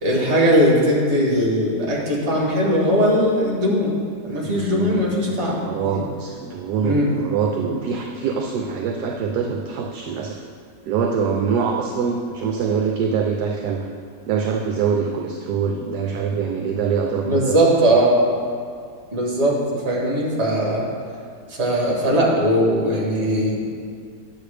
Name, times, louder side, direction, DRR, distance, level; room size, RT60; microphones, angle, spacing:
voice 1, 0.0-4.0 4.2-6.0 6.8-7.1 7.6-7.7 17.2-18.2 19.1-20.8 21.6-23.7, equal, 40° right, -3 dB, 1.7 m, -19 dB
voice 2, 4.4-10.4 10.9-13.9 14.3-17.6 17.8-18.0, right 6 dB, 75° right, 1 dB, 1.1 m, -24 dB
9.3 x 7.0 x 3.3 m, 2.2 s
omnidirectional pair, 1.9 m